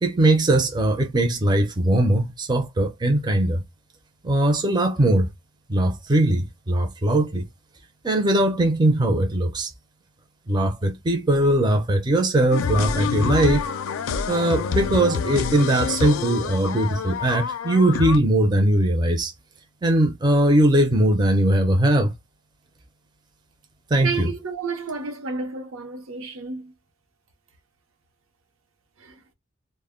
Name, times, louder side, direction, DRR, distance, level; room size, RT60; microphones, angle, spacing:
voice 1, 0.0-3.6 4.2-5.3 5.7-7.5 8.0-9.7 10.5-13.6 14.3-19.3 19.8-22.1 23.9-24.3, right 1 dB, 20° right, 0.4 m, -20 dB
sound 1, 12.5-18.2, left 6 dB, 80° left, 0.4 m, -27 dB
voice 2, 24.0-26.7 29.0-29.1, right 4 dB, 85° right, 0.7 m, -31 dB
2.1 x 2.1 x 3.5 m
head